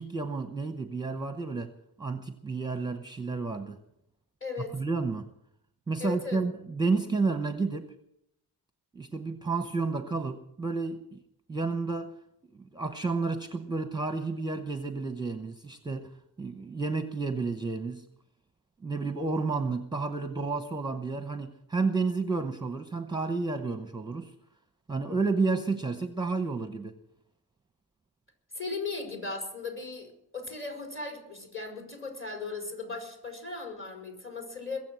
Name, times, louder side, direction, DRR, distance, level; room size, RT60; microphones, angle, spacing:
voice 1, 0.0-1.7 2.0-3.8 4.6-5.3 5.9-7.9 8.9-11.2 11.5-12.2 12.5-16.1 16.4-18.1 18.8-24.3 24.9-26.9, right 4 dB, 10° right, 9 dB, 0.8 m, -31 dB
voice 2, 4.4-4.7 6.0-6.4 28.5-34.8, left 3 dB, 30° left, 2 dB, 4.9 m, -37 dB
22.0 x 7.5 x 7.6 m, 0.79 s
cardioid pair, 90°, 39 cm